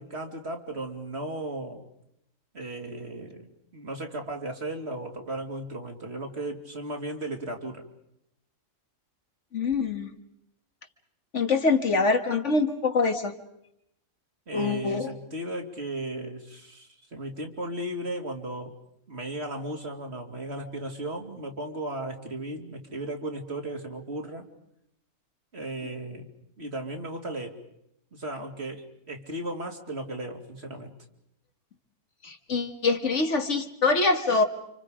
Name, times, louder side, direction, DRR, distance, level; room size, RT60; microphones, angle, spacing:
voice 1, 0.0-1.8 2.5-7.8 14.5-18.7 19.1-24.4 25.5-26.3 26.6-27.6 28.1-30.9, right 1 dB, 55° right, 3 dB, 3.0 m, -35 dB
voice 2, 9.5-10.1 11.3-13.3 14.5-15.1 32.2-34.4, left 3 dB, 65° left, 6 dB, 2.0 m, -24 dB
30.0 x 27.0 x 5.1 m, 0.78 s
omnidirectional pair, 1.4 m